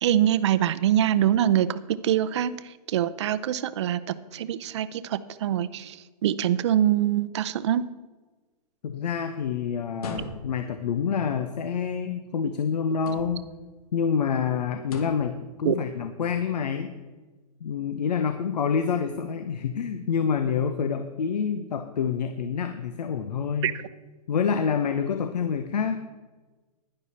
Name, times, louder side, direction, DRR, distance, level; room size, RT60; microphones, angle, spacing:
voice 1, 0.0-2.5 2.9-4.0 4.3-6.0 6.2-7.8 15.6-15.8 23.6-23.7, right 11 dB, 45° right, 14 dB, 0.5 m, -24 dB
voice 2, 8.8-13.4 13.9-16.9 17.6-23.7 24.3-26.1, left 6 dB, 85° left, 8 dB, 0.9 m, -27 dB
sound 1, 9.9-10.8 12.9-13.6 14.8-15.4, left 2 dB, 65° left, 2.1 m, -38 dB
11.0 x 10.5 x 4.2 m, 1.3 s
hypercardioid pair, 165°, 20 cm